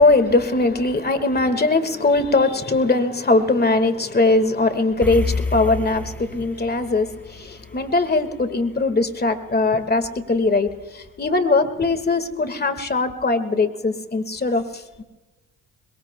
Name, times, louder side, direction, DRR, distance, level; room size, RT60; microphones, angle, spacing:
voice 1, 0.0-15.0, left 3 dB, 30° left, 10 dB, 1.7 m, -20 dB
sound 1, 5.0-9.5, left 3 dB, 5° left, 4.4 m, -30 dB
22.0 x 21.5 x 2.2 m, 1.2 s
cardioid pair, 70°, 33 cm